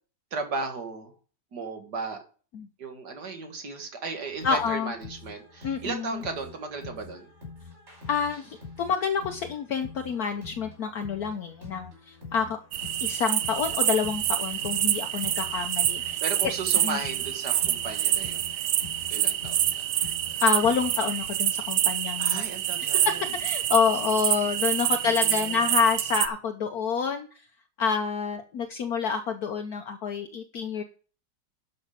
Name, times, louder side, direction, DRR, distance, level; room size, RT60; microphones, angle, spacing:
voice 1, 0.3-1.1 1.5-2.2 2.8-7.3 16.2-18.5 19.1-19.9 22.2-23.3 24.8-25.8, right 4 dB, 65° right, 4 dB, 2.4 m, -36 dB
sound 1, 4.1-21.2, left 4 dB, 40° right, 5.0 m, -46 dB
voice 2, 4.4-4.9 5.6-6.2 8.1-12.6 13.0-16.2 16.8-17.0 20.4-22.4 23.4-27.3 27.8-30.8, left 6 dB, 65° left, 6 dB, 1.3 m, -28 dB
sound 2, 12.7-26.3, right 11 dB, 90° right, 1.4 m, -27 dB
11.5 x 5.8 x 5.1 m, 0.38 s
omnidirectional pair, 1.9 m